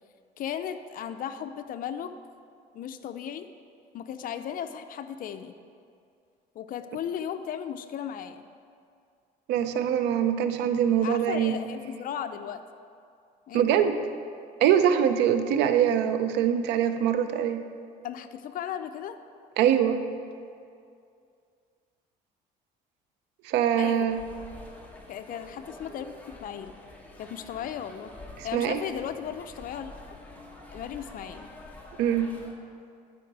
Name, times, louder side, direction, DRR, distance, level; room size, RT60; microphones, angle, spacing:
voice 1, 0.4-2.1 2.7-3.5 3.9-5.5 6.5-8.4 11.0-12.6 13.5-13.6 18.0-19.2 23.7-24.1 25.1-26.7 27.2-28.1 28.4-29.9 30.7-31.5, left 9 dB, 55° left, 10 dB, 0.5 m, -36 dB
voice 2, 9.5-11.6 13.5-14.0 14.6-17.6 19.6-20.0 23.4-24.2 28.4-28.8 32.0-32.3, right 9 dB, 90° right, 9 dB, 0.5 m, -23 dB
sound 1, 24.1-32.5, left 2 dB, 10° left, 1.1 m, -47 dB
12.0 x 5.0 x 4.7 m, 2.4 s
cardioid pair, 110°, 17 cm